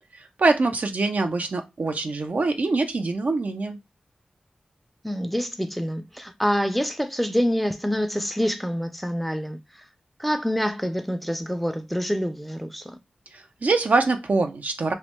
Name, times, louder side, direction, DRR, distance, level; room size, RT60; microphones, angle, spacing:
voice 1, 0.1-3.8 13.3-14.9, right 3 dB, 65° right, 0.5 m, -24 dB
voice 2, 5.0-9.6 10.2-13.0, equal, ahead, 0.5 m, -26 dB
3.1 x 2.1 x 3.0 m
cardioid pair, 40°, 3 cm